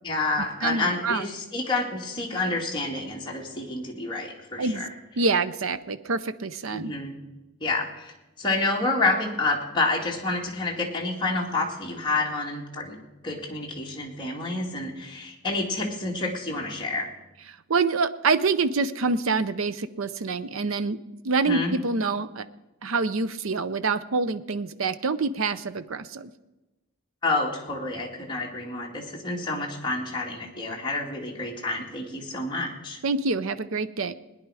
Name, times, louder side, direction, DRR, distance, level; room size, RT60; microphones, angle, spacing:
voice 1, 0.0-4.9 6.7-7.1 7.6-8.1 8.4-13.0 13.2-17.1 21.5-21.8 27.2-33.0, left 2 dB, 20° left, -2 dB, 2.2 m, -29 dB
voice 2, 0.6-1.2 4.6-4.8 5.2-6.9 17.7-21.0 21.2-22.4 22.8-26.3 33.0-34.1, right 4 dB, 70° right, 13 dB, 0.6 m, -26 dB
19.0 x 10.0 x 4.9 m, 1.0 s
head